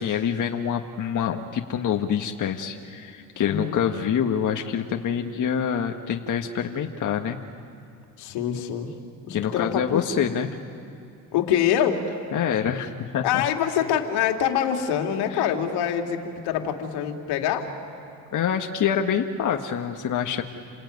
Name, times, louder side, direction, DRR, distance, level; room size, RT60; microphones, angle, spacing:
voice 1, 0.0-7.4 9.3-10.5 12.3-13.4 15.3-15.4 18.3-20.4, left 8 dB, 50° left, 3 dB, 1.6 m, -26 dB
voice 2, 3.4-3.8 8.2-8.9 9.3-10.0 11.3-12.0 13.2-17.7, left 9 dB, 80° left, 3 dB, 2.7 m, -25 dB
29.0 x 21.0 x 9.5 m, 2.7 s
supercardioid pair, 80°, 39 cm